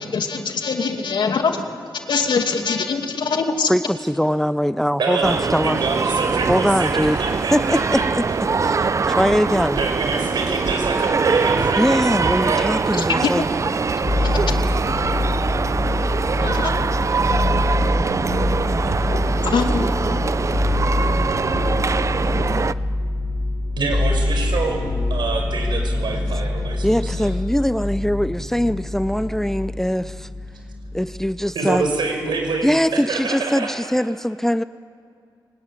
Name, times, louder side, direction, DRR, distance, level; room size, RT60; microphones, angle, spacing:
voice 1, 0.0-1.6 2.1-3.7 13.0-13.1 14.2-14.5 16.4-16.7 19.4-19.9 21.5-21.6, left 5 dB, 75° left, 4 dB, 2.4 m, -23 dB
voice 2, 3.7-5.8 6.5-7.2 7.5-8.3 8.6-9.8 11.0-11.1 11.8-13.4 26.8-30.3 30.9-31.9 32.6-34.6, equal, 5° left, 14 dB, 0.5 m, -21 dB
voice 3, 5.0-8.0 9.8-12.8 17.1-17.2 23.8-27.3 31.5-33.9, right 4 dB, 75° right, 3 dB, 5.5 m, -26 dB
sound 1, 5.2-22.7, right 5 dB, 40° right, 0.5 m, -23 dB
sound 2, 14.0-31.5 31.8-32.6, left 2 dB, 40° left, 5.7 m, -25 dB
22.5 x 18.0 x 9.8 m, 2.3 s
cardioid pair, 80°, 8 cm